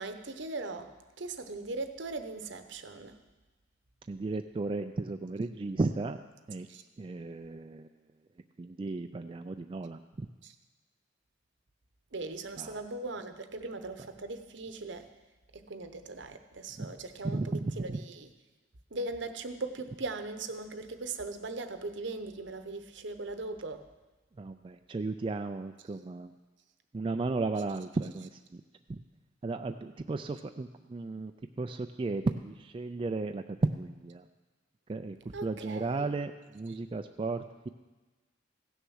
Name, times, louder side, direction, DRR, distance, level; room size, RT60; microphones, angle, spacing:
voice 1, 0.0-3.2 6.7-6.8 10.4-10.5 12.1-15.1 15.5-18.3 18.9-23.9 35.3-36.1 36.7-36.8, right 3 dB, 65° right, 8 dB, 0.9 m, -39 dB
voice 2, 4.1-6.2 6.5-6.7 7.0-7.9 8.6-10.3 12.6-12.9 16.8-16.9 17.2-18.0 24.4-26.3 26.9-28.6 28.9-29.0 29.4-31.3 31.6-34.2 34.9-35.2 35.4-37.7, right 3 dB, 25° right, 6 dB, 0.3 m, -34 dB
16.0 x 6.7 x 6.3 m, 1.2 s
head